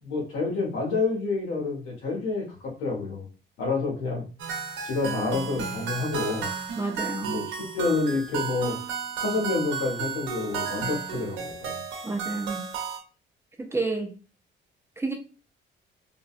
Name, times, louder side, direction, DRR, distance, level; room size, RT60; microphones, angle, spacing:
voice 1, 0.0-3.2 3.6-4.2 4.8-6.5 7.2-8.8 9.2-11.8, left 3 dB, 80° left, -1 dB, 1.3 m, -28 dB
sound 1, 4.4-13.0, right 7 dB, 70° right, 0.8 m, -33 dB
voice 2, 6.8-7.4 12.0-12.6 13.6-14.1 15.0-15.1, right 3 dB, 15° right, 3 dB, 0.4 m, -30 dB
3.7 x 2.2 x 2.4 m, 0.35 s
cardioid pair, 140°, 20 cm